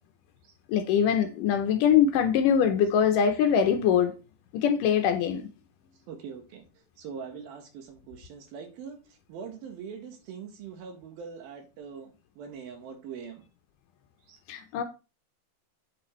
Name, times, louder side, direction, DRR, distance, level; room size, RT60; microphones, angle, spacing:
voice 1, 0.7-4.1 4.5-5.5 14.5-14.8, left 8 dB, 75° left, 2.1 m, -23 dB
voice 2, 6.1-6.6 7.0-13.4 14.3-14.4, right 6 dB, 80° right, 3.3 m, -42 dB
8.4 x 6.9 x 3.1 m
omnidirectional pair, 4.2 m